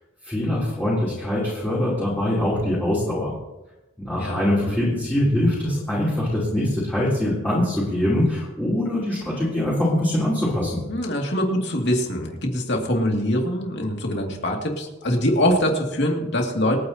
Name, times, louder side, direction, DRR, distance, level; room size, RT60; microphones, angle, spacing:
voice 1, 0.2-3.4 4.0-10.8, left 1 dB, 10° left, -8 dB, 3.5 m, -23 dB
voice 2, 4.2-4.8 10.9-16.8, equal, 55° left, 1 dB, 2.5 m, -23 dB
27.0 x 9.6 x 2.9 m, 1.0 s
head